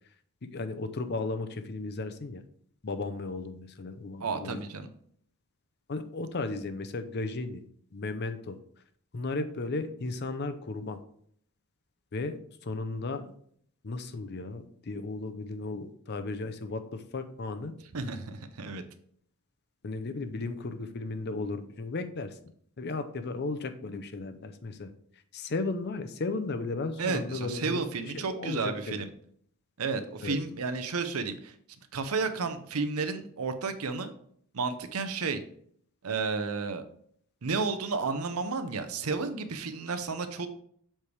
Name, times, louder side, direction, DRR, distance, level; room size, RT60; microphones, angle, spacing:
voice 1, 0.4-2.4 2.8-4.6 5.9-7.6 7.9-8.6 9.1-11.0 12.1-13.3 13.8-17.7 19.8-22.4 22.8-24.9 25.3-29.0 30.2-30.4, left 3 dB, 50° left, 10 dB, 0.6 m, -35 dB
voice 2, 4.2-4.9 17.9-18.8 27.0-29.1 29.8-31.6 31.9-34.1 34.5-35.4 36.0-36.8 37.4-40.5, right 4 dB, 80° right, 9 dB, 0.7 m, -32 dB
7.3 x 3.4 x 4.7 m, 0.64 s
head